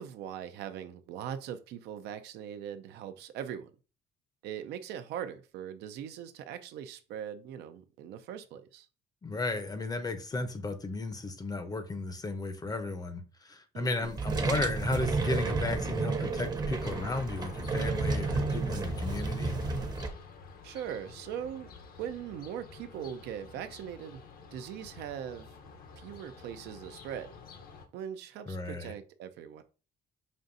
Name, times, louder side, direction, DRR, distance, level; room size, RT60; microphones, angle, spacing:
voice 1, 0.0-3.7 4.4-8.9 13.7-14.1 20.6-24.2 24.5-25.5 26.0-27.3 27.9-29.6, right 9 dB, 80° right, 0.5 m, -40 dB
voice 2, 9.2-19.5 28.5-28.9, left 2 dB, 20° left, 0.6 m, -34 dB
sound 1, 14.0-20.1, right 3 dB, 25° right, 0.7 m, -31 dB
sound 2, 16.8-27.9, left 5 dB, 60° left, 0.8 m, -50 dB
5.3 x 2.6 x 2.6 m
cardioid pair, 110°, 17 cm